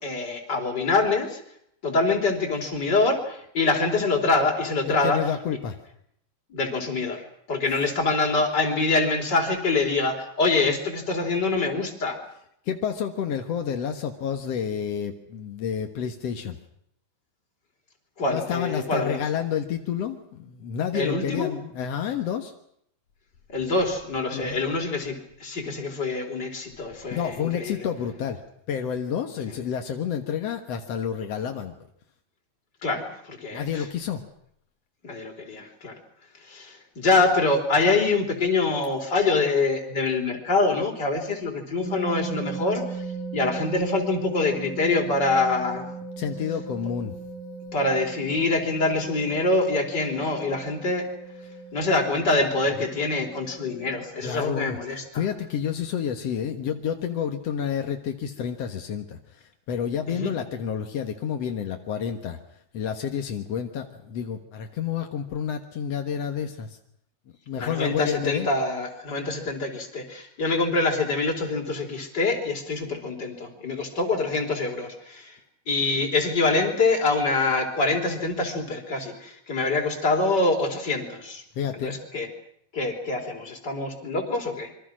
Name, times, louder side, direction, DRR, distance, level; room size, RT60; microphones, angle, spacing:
voice 1, 0.0-1.4 1.8-5.2 6.5-12.2 18.2-19.2 20.9-21.5 23.5-27.8 32.8-33.8 35.0-36.0 36.4-43.0 43.3-45.9 47.7-51.1 51.7-55.2 60.1-60.3 67.5-75.4 75.7-81.4 81.8-82.3 82.7-84.7, left 3 dB, 25° left, 2 dB, 4.5 m, -25 dB
voice 2, 4.9-5.8 12.6-16.6 18.3-22.5 24.3-24.6 27.1-28.4 28.7-31.7 33.5-34.2 46.2-47.1 54.2-62.4 62.7-66.8 67.5-68.5 81.5-81.9, left 8 dB, 65° left, 5 dB, 1.6 m, -29 dB
sound 1, 41.8-54.0, right 4 dB, 45° right, 8.6 m, -37 dB
26.5 x 24.5 x 6.3 m, 0.70 s
omnidirectional pair, 4.9 m